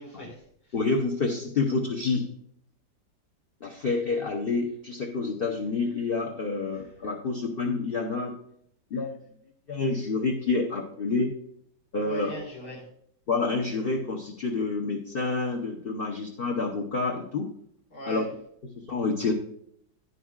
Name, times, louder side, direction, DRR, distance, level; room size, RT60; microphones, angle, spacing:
voice 1, 0.0-0.7 3.7-3.9 6.7-7.0 12.0-12.9 17.9-18.3, equal, 60° left, -3 dB, 2.7 m, -41 dB
voice 2, 0.7-2.3 3.6-8.3 8.9-9.2 9.7-11.3 11.9-12.3 13.3-17.5 18.1-18.2 18.6-19.3, left 3 dB, 45° left, 0 dB, 0.8 m, -28 dB
11.0 x 9.9 x 2.4 m, 0.68 s
omnidirectional pair, 2.0 m